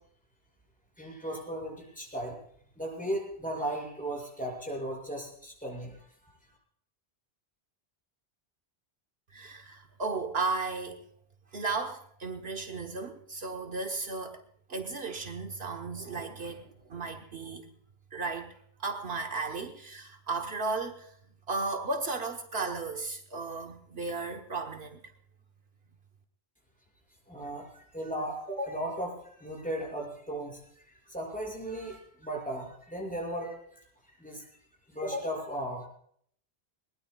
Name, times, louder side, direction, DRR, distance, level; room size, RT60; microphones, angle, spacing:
voice 1, 1.0-2.4 2.8-6.1 27.3-34.5 34.9-35.9, right 1 dB, 5° left, -1 dB, 5.9 m, -36 dB
voice 2, 9.3-11.0 11.5-14.4 14.7-17.7 18.1-18.5 18.8-21.1 21.5-25.0, right 3 dB, 70° right, 4 dB, 1.4 m, -35 dB
21.0 x 20.0 x 2.3 m, 0.64 s
omnidirectional pair, 1.1 m